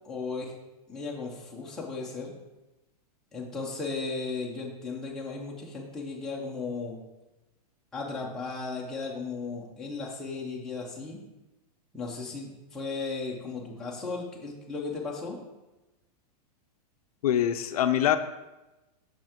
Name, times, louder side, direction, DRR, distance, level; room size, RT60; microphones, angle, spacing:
voice 1, 0.0-0.5 0.9-2.3 3.3-7.0 7.9-11.2 11.9-15.4, left 4 dB, ahead, -4 dB, 0.5 m, -35 dB
voice 2, 17.2-18.2, left 10 dB, 65° left, 9 dB, 0.4 m, -24 dB
5.7 x 5.1 x 3.5 m, 1.0 s
supercardioid pair, 170°, 20 cm